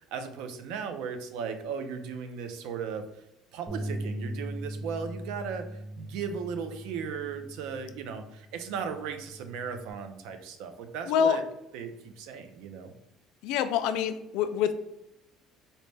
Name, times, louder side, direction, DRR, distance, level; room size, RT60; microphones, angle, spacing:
voice 1, 0.1-3.1 3.5-11.4 11.7-12.9, right 6 dB, 80° right, 7 dB, 0.4 m, -36 dB
Bass guitar, 3.7-9.9, right 1 dB, 20° right, 0.4 m, -40 dB
voice 2, 11.1-11.4 13.4-14.7, left 8 dB, 80° left, 10 dB, 0.3 m, -26 dB
4.0 x 2.1 x 3.2 m, 0.86 s
cardioid pair, 155°, 0 cm